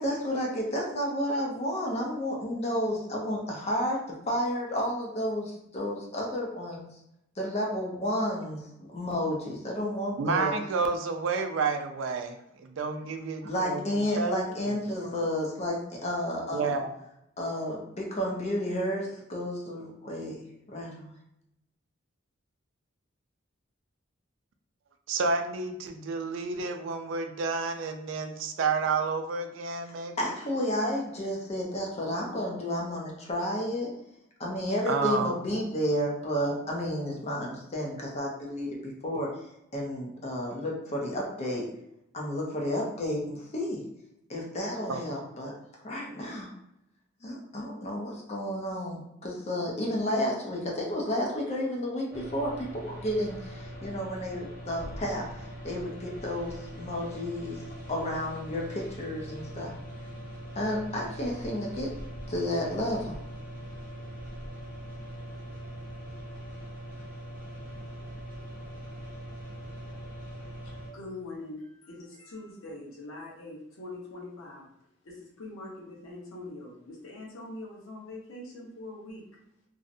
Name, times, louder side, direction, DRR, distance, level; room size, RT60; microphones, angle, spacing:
voice 1, 0.0-4.0 4.3-6.9 7.4-10.5 13.4-16.7 17.4-21.2 29.9-33.9 34.4-39.3 39.7-41.7 42.1-43.8 44.3-45.5 45.8-46.5 47.2-57.6 57.9-59.7 60.6-61.9 62.3-63.2, equal, 30° left, -2 dB, 0.5 m, -31 dB
voice 2, 10.2-13.8 14.2-14.3 14.9-15.0 16.5-16.9 25.1-30.3 34.9-35.3 44.9-45.0, right 4 dB, 70° right, 6 dB, 0.3 m, -30 dB
sound 1, 52.1-70.9, right 1 dB, 10° right, 0.7 m, -42 dB
voice 3, 70.9-74.7 75.0-79.2, left 2 dB, 85° left, -3 dB, 0.8 m, -43 dB
2.6 x 2.0 x 2.5 m, 0.81 s
head